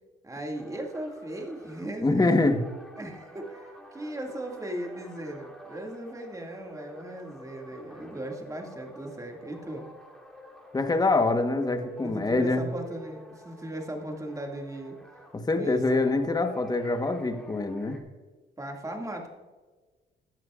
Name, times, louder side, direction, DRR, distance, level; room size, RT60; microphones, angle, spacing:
voice 1, 0.2-2.3 3.0-9.9 12.0-15.0 15.5-16.3 18.6-19.3, right 1 dB, 15° right, 2 dB, 2.1 m, -37 dB
sound 1, 0.5-11.1 11.4-15.4 15.8-18.0, equal, ahead, 2.3 m, -49 dB
voice 2, 2.0-2.6 10.7-12.6 15.3-18.0, left 2 dB, 20° left, 7 dB, 1.2 m, -25 dB
14.5 x 10.5 x 2.5 m, 1.3 s
cardioid pair, 90°, 20 cm